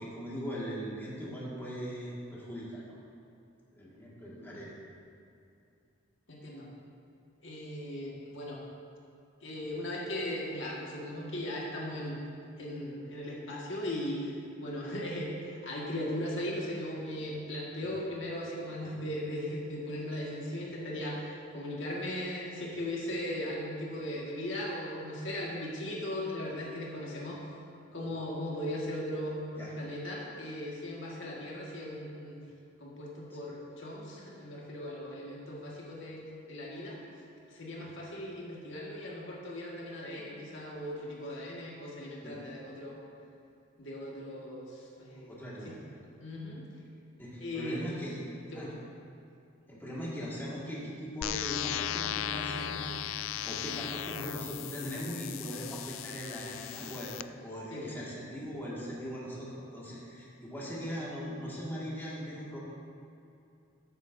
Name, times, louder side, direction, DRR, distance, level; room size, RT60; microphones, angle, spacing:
voice 1, 0.0-3.0 3.7-4.7 17.8-18.0 18.8-18.9 29.6-29.7 42.2-42.4 45.1-45.7 47.2-48.3 48.5-48.7 49.7-53.0 53.4-57.1 57.4-62.6, equal, 10° left, -7 dB, 1.8 m, -40 dB
voice 2, 6.3-6.7 7.4-8.6 9.4-12.2 12.6-14.3 14.6-27.4 27.9-32.4 32.8-37.1 37.5-43.0 43.8-45.3 45.6-45.8 46.2-46.7 47.4-47.8 48.5-48.8 57.7-58.0, left 1 dB, 70° left, -4 dB, 1.6 m, -38 dB
sound 1, 51.2-57.2, left 11 dB, 90° left, 0.3 m, -37 dB
14.0 x 8.3 x 2.6 m, 2.5 s
head